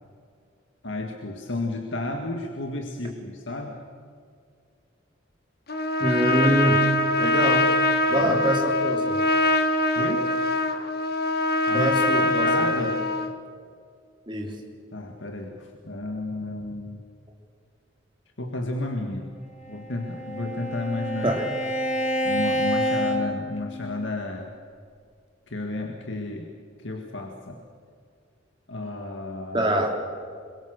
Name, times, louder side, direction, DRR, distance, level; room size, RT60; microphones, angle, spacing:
voice 1, 0.8-3.8 8.1-8.4 10.0-10.4 11.7-13.0 14.9-17.0 18.4-19.3 19.7-21.3 22.2-24.5 25.5-26.5 26.8-27.6 28.7-29.7, left 2 dB, 70° left, 3 dB, 2.0 m, -32 dB
Trumpet, 5.7-13.3, left 2 dB, 55° left, 1.5 m, -23 dB
voice 2, 6.0-6.8 7.2-7.7 8.1-9.2 11.7-12.9 14.3-14.5 21.2-21.4 29.5-30.0, right 1 dB, 25° right, 1 dB, 3.4 m, -24 dB
Bowed string instrument, 19.6-24.1, equal, 35° left, 2.6 m, -28 dB
26.5 x 23.5 x 6.7 m, 2.2 s
head